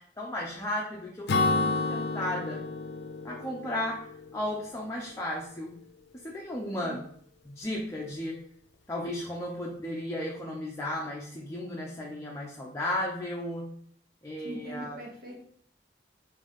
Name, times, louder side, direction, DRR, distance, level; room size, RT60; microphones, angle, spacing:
voice 1, 0.0-2.6 3.2-5.7 6.2-7.0 7.4-8.4 8.9-13.8 14.2-15.0, left 1 dB, 15° left, -2 dB, 0.5 m, -35 dB
Acoustic guitar / Strum, 1.3-4.9, left 3 dB, 70° left, 0.4 m, -30 dB
voice 2, 14.4-15.4, right 1 dB, 55° right, -2 dB, 1.2 m, -41 dB
3.9 x 2.6 x 3.5 m, 0.62 s
head